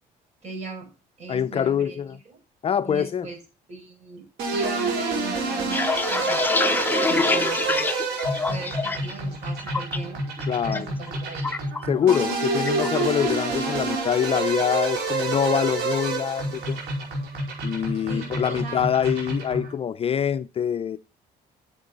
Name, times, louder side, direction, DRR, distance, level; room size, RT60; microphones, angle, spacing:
voice 1, 0.4-0.9 1.2-2.4 2.8-3.4 3.7-4.3 4.5-6.5 7.1-7.9 8.5-10.2 10.7-11.5 18.0-18.9, right 4 dB, 40° right, 5.8 m, -38 dB
voice 2, 1.3-2.2 2.6-3.3 10.5-10.9 11.9-16.8 17.6-21.0, left 8 dB, 35° left, 0.5 m, -24 dB
sound 1, 4.4-19.7, right 3 dB, 85° right, 4.9 m, -28 dB
sound 2, 5.5-9.1 9.5-10.0 10.4-10.8 11.1-12.3 12.7-12.9 13.2-13.7, left 4 dB, 10° left, 0.8 m, -26 dB
10.0 x 7.5 x 3.8 m
cardioid pair, 110°, 17 cm